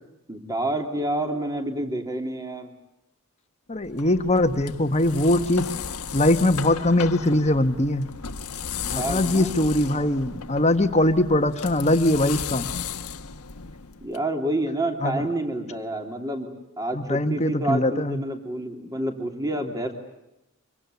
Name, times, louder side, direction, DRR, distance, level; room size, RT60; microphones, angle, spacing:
voice 1, 0.3-2.7 8.8-9.6 14.0-19.9, right 1 dB, 15° right, 4 dB, 3.1 m, -28 dB
voice 2, 3.7-5.7 6.1-8.1 8.9-12.7 15.0-15.2 16.9-18.2, left 1 dB, 30° left, 8 dB, 1.4 m, -21 dB
sound 1, 3.8-14.2, left 6 dB, 85° left, 1.3 m, -35 dB
25.5 x 23.5 x 8.3 m, 0.90 s
head